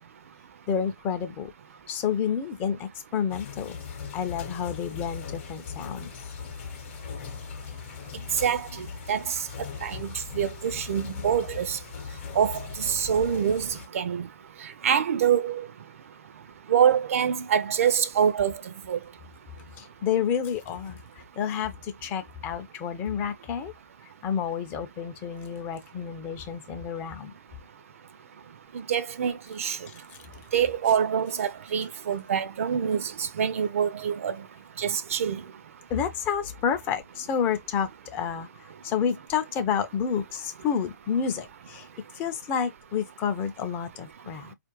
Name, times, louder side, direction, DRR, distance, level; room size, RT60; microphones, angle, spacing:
voice 1, 0.7-1.5 1.9-6.2 19.8-23.7 24.0-27.3 29.9-30.2 35.9-41.9 42.1-44.5, left 7 dB, 20° left, 0.5 m, -30 dB
sound 1, 3.3-13.9, left 7 dB, 40° left, 0.9 m, -39 dB
voice 2, 8.4-9.3 9.8-10.1 10.3-11.8 12.4-14.3 14.8-15.6 16.7-18.6 18.9-19.0 28.7-29.8 30.5-34.4 34.8-35.4, right 8 dB, 50° right, 0.5 m, -25 dB
4.3 x 2.5 x 2.9 m
figure-of-eight pair, 125°, 10 cm